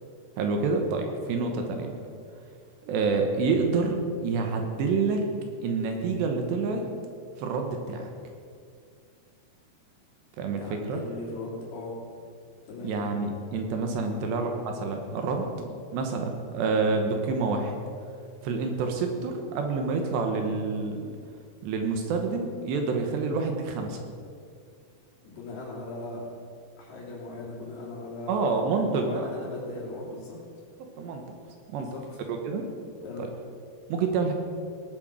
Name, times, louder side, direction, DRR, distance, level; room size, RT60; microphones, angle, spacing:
voice 1, 0.4-1.9 2.8-5.3 5.6-6.9 7.4-8.1 10.4-11.0 12.8-17.8 18.4-21.2 21.6-24.0 28.3-29.3 31.0-31.2 31.7-31.9 32.3-32.7 33.2-33.3 33.9-34.3, right 4 dB, 75° right, 4 dB, 3.2 m, -28 dB
voice 2, 10.5-12.0 12.7-13.0 14.0-14.3 25.2-26.2 26.8-30.4 31.7-32.0 33.0-33.3, left 2 dB, 60° left, -4 dB, 4.7 m, -39 dB
18.0 x 7.9 x 6.5 m, 2.3 s
omnidirectional pair, 5.3 m